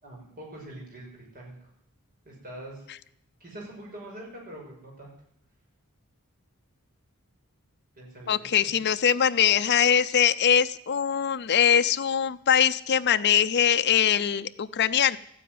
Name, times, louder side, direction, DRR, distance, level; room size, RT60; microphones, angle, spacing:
voice 1, 0.0-1.7 2.2-2.8 3.4-5.1 7.9-8.9, right 1 dB, 40° right, -2 dB, 6.1 m, -44 dB
voice 2, 8.3-15.2, left 8 dB, 50° left, 9 dB, 0.5 m, -22 dB
14.5 x 9.8 x 9.3 m, 0.72 s
head